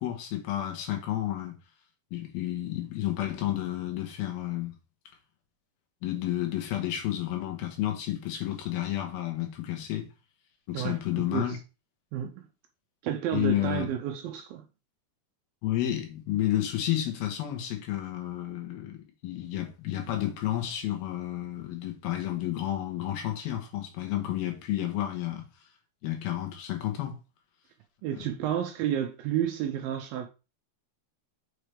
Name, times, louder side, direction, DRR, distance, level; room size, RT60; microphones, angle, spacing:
voice 1, 0.0-1.6 2.1-4.7 6.0-10.1 10.7-11.6 13.3-13.9 15.6-25.5 26.0-27.2, left 13 dB, 75° left, 2.9 m, -31 dB
voice 2, 10.7-11.6 12.1-12.4 13.0-14.6 28.0-30.3, right 10 dB, 80° right, 2.2 m, -31 dB
6.6 x 4.8 x 3.3 m
omnidirectional pair, 4.6 m